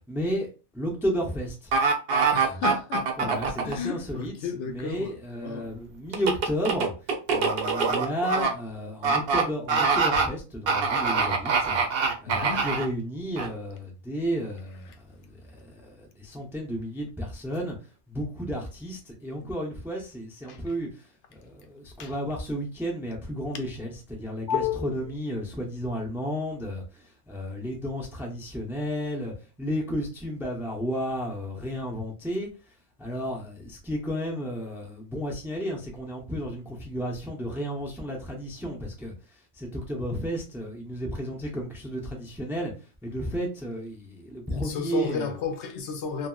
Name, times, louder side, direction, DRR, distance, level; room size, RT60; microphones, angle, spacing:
voice 1, 0.1-1.7 2.4-2.6 3.2-4.3 4.7-6.9 7.3-11.8 12.2-17.8 18.1-32.5 33.0-39.1 39.5-42.7 43.0-45.3, equal, 5° right, 0.4 m, -32 dB
sound 1, 1.7-3.8 6.1-8.5 9.0-9.4 9.7-10.3 10.7-12.9 13.4-13.5, right 4 dB, 60° right, 0.8 m, -24 dB
voice 2, 2.3-5.7 12.3-12.7 19.4-19.5 20.5-20.6 22.0-22.1 24.5-25.0 44.5-46.3, left 6 dB, 75° left, 0.9 m, -32 dB
2.8 x 2.7 x 2.3 m
omnidirectional pair, 1.2 m